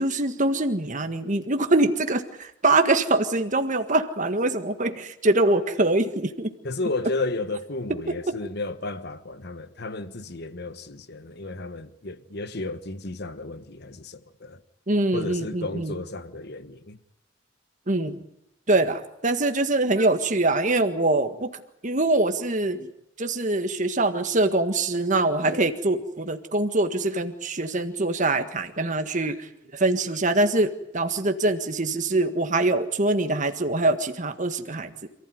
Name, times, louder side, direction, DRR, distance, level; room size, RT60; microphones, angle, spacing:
voice 1, 0.0-6.5 8.3-8.4 14.9-15.9 17.9-18.2 18.7-21.5 21.8-22.9 23.2-35.1, right 2 dB, 40° right, 1.7 m, -24 dB
voice 2, 6.6-14.6 15.1-17.0, left 2 dB, 55° left, 1.4 m, -33 dB
27.5 x 15.5 x 9.5 m
head